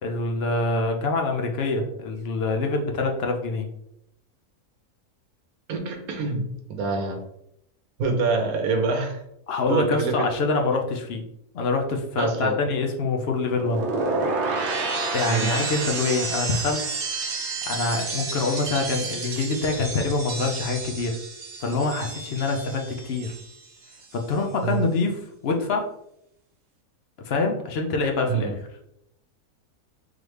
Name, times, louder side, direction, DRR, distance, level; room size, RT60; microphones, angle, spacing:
voice 1, 0.0-3.7 9.5-11.2 11.5-13.8 15.1-16.8 17.7-21.2 21.6-23.4 24.1-25.9 27.3-28.6, left 3 dB, 60° left, 3 dB, 0.6 m, -25 dB
voice 2, 5.7-7.2 8.0-9.2 9.7-10.3 12.2-12.6 15.2-15.5 24.6-24.8 28.3-28.6, right 4 dB, 75° right, 4 dB, 1.2 m, -26 dB
sound 1, 13.5-23.6 23.9-24.4, right 3 dB, 55° right, 0.9 m, -30 dB
3.8 x 3.1 x 3.2 m, 0.76 s
omnidirectional pair, 1.6 m